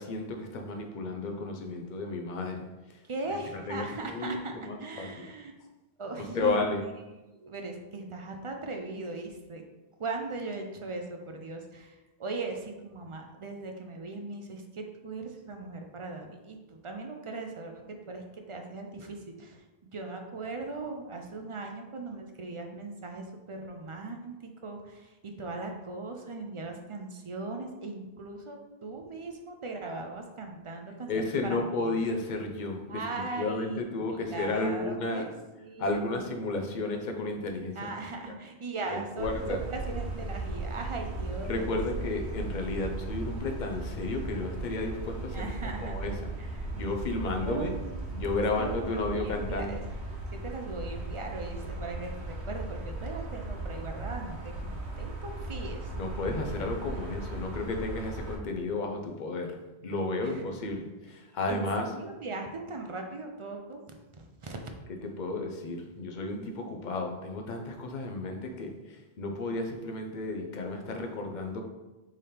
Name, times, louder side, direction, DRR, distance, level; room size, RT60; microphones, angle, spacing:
voice 1, 0.0-3.0 3.7-4.4 4.7-5.2 6.3-6.8 31.1-35.2 35.8-37.8 38.3-38.4 39.2-39.6 41.5-45.5 45.8-46.1 46.7-47.7 48.1-49.8 56.0-61.8 65.2-71.6, left 2 dB, 50° left, 3 dB, 0.7 m, -33 dB
voice 2, 3.0-5.5 6.0-6.8 7.3-9.7 10.0-32.0 32.9-33.8 34.1-35.3 35.6-36.2 37.8-41.8 45.3-46.7 47.4-48.1 48.6-49.8 50.3-55.9 60.2-60.4 61.5-64.6, right 3 dB, 50° right, 3 dB, 0.3 m, -39 dB
sound 1, 39.2-58.4, right 2 dB, 85° right, 1.1 m, -37 dB
3.7 x 3.3 x 4.2 m, 1.1 s
omnidirectional pair, 1.1 m